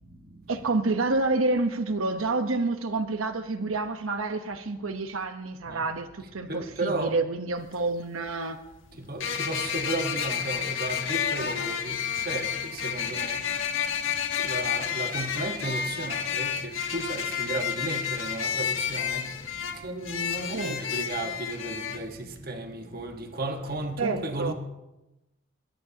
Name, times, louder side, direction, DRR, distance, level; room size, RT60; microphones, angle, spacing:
voice 1, 0.5-8.6 20.5-20.8 24.0-24.5, right 3 dB, 90° right, 1.0 m, -28 dB
voice 2, 6.5-7.2 9.0-13.4 14.4-19.3 19.7-24.5, right 2 dB, 45° right, 1.4 m, -34 dB
sound 1, 7.6-7.7 9.2-22.0, left 8 dB, 70° left, 1.5 m, -30 dB
21.0 x 21.0 x 2.9 m
head